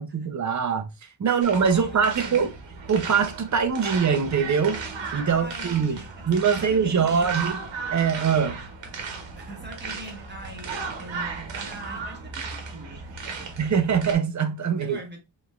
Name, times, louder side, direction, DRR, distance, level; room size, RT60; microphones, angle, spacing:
voice 1, 0.0-2.5 2.9-4.8 5.1-6.0 6.3-7.6 7.9-8.6 13.6-15.0, right 6 dB, 40° right, 0.6 m, -23 dB
voice 2, 1.2-2.5 5.2-7.6 9.4-13.1 14.8-15.2, right 1 dB, 25° right, 1.3 m, -42 dB
sound 1, 1.4-14.1, right 4 dB, 75° right, 1.1 m, -35 dB
5.0 x 3.2 x 2.4 m
wide cardioid pair, 145°, 44 cm